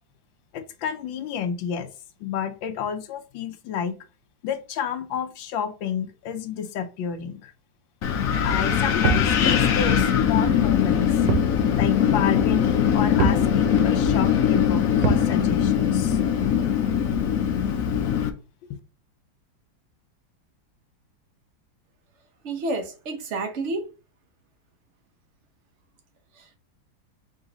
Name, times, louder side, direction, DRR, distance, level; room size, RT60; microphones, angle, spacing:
voice 1, 0.5-1.9 2.2-4.0 4.4-7.5 8.4-11.1 11.7-16.2, left 8 dB, 80° left, 1.4 m, -30 dB
Wind, 8.0-18.3, left 8 dB, 65° left, 0.8 m, -21 dB
sound 1, 9.0-9.4 11.3-11.6 11.9-12.0 13.2-13.5 15.0-15.3, right 7 dB, 90° right, 0.6 m, -24 dB
voice 2, 22.4-23.9 26.4-26.6, right 2 dB, 55° right, 0.8 m, -30 dB
3.9 x 3.1 x 3.9 m
omnidirectional pair, 2.1 m